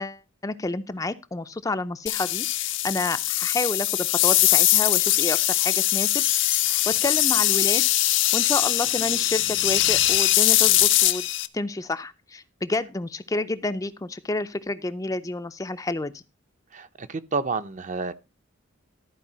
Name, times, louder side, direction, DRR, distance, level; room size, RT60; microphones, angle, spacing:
voice 1, 0.0-6.2 6.5-7.9 8.3-11.2 11.5-16.2, left 2 dB, 15° left, 0.4 m, -29 dB
sound 1, 2.1-11.5, left 15 dB, 65° left, 0.6 m, -21 dB
voice 2, 16.7-18.1, right 4 dB, 40° right, 0.6 m, -29 dB
13.5 x 4.7 x 5.6 m
head